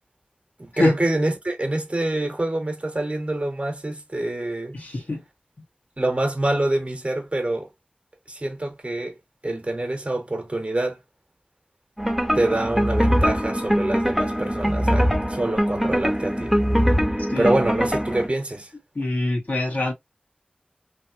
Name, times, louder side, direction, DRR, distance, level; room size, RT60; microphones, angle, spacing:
voice 1, 0.6-4.8 6.0-7.7 8.3-9.2 9.4-11.0 12.3-16.5 17.4-18.7, right 1 dB, 45° right, 0.9 m, -26 dB
voice 2, 4.7-5.2 17.3-17.6 19.0-19.9, left 2 dB, 75° left, 1.6 m, -24 dB
sound 1, 12.0-18.3, equal, ahead, 0.8 m, -22 dB
3.2 x 2.9 x 2.7 m
wide cardioid pair, 55°, 3 cm